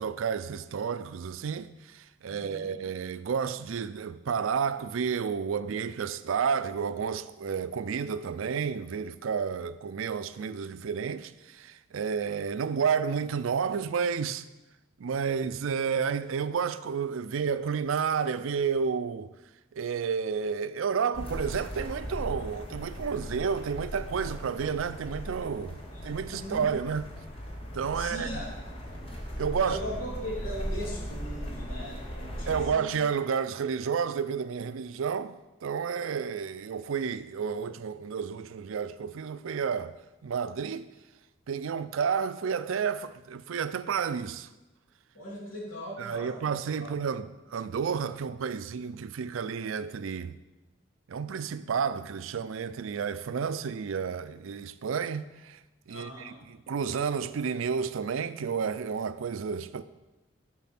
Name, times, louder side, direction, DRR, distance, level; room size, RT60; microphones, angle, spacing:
voice 1, 0.0-14.4 15.0-19.3 19.7-25.8 26.0-27.1 27.7-28.3 29.4-29.8 32.5-35.4 35.6-40.0 40.2-40.9 41.5-44.5 46.0-50.4 51.1-55.6 55.9-59.8, right 6 dB, 85° right, 0.4 m, -31 dB
voice 2, 2.3-2.7 25.9-26.6 27.9-28.5 29.6-32.9 45.1-46.4 46.8-47.2 55.9-56.4, equal, 80° left, 2.9 m, -39 dB
sound 1, 21.1-32.6, equal, 30° left, 1.3 m, -38 dB
7.2 x 6.1 x 5.9 m
head